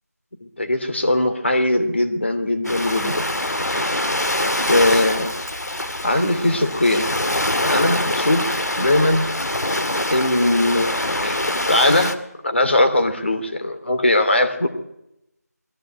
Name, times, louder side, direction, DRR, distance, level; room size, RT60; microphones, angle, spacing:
voice 1, 0.6-3.3 4.4-5.3 6.0-7.1 7.7-8.5 8.8-9.3 10.1-12.1 12.4-14.7, left 1 dB, 40° left, 7 dB, 2.9 m, -20 dB
Ocean, 2.6-12.1, left 1 dB, 70° left, 2.3 m, -24 dB
20.5 x 15.0 x 9.3 m, 0.84 s
figure-of-eight pair, 175°, 9 cm